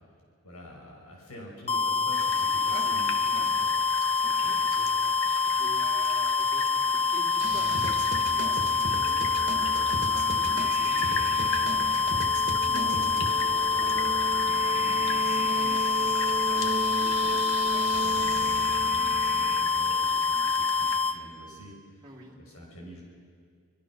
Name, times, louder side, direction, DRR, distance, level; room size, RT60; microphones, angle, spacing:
voice 1, 0.4-3.7 12.6-17.4 17.9-23.0, equal, 75° left, -1 dB, 6.4 m, -46 dB
sound 1, 1.7-21.2, left 4 dB, 30° left, 1.0 m, -26 dB
sound 2, 2.1-21.0, left 4 dB, 60° left, 1.7 m, -40 dB
voice 2, 2.7-3.5 4.2-11.8 17.6-18.1 22.0-22.4, right 1 dB, 20° right, -4 dB, 3.0 m, -46 dB
sound 3, 7.4-19.6, right 3 dB, 55° right, 2.0 m, -35 dB
25.0 x 21.5 x 6.3 m, 2.1 s
head